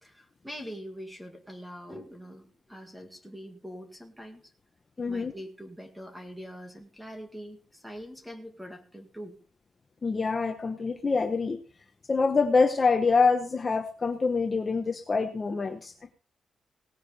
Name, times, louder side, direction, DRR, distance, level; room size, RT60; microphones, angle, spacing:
voice 1, 0.0-4.4 5.0-9.4, equal, 5° right, 4 dB, 2.0 m, -43 dB
voice 2, 5.0-5.3 10.0-11.6 12.1-16.1, left 4 dB, 25° left, 5 dB, 0.9 m, -25 dB
18.0 x 9.5 x 3.4 m, 0.37 s
wide cardioid pair, 155°, 0 cm